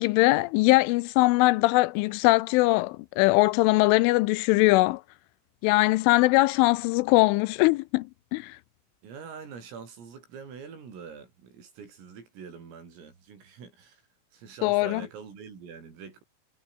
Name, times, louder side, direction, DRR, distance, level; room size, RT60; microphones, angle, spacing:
voice 1, 0.0-5.0 5.6-8.1 8.3-8.6 14.6-15.0, left 21 dB, 85° left, 3.0 m, -21 dB
voice 2, 9.0-14.0 14.3-16.2, right 6 dB, 90° right, 8.9 m, -44 dB
omnidirectional pair, 5.8 m